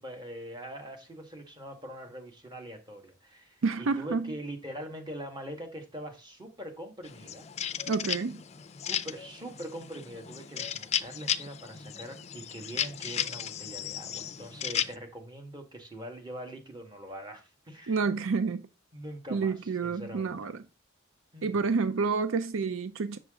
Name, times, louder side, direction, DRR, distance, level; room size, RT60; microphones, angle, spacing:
voice 1, 0.0-7.4 8.9-18.3 18.9-20.4 21.3-21.5, right 1 dB, 20° right, 1.7 m, -43 dB
voice 2, 3.6-4.3 7.9-8.4 17.9-18.6 19.3-20.6 21.4-23.2, right 4 dB, 70° right, 0.5 m, -29 dB
sound 1, 7.0-15.0, left 9 dB, 30° left, 0.4 m, -35 dB
7.8 x 6.1 x 3.7 m
head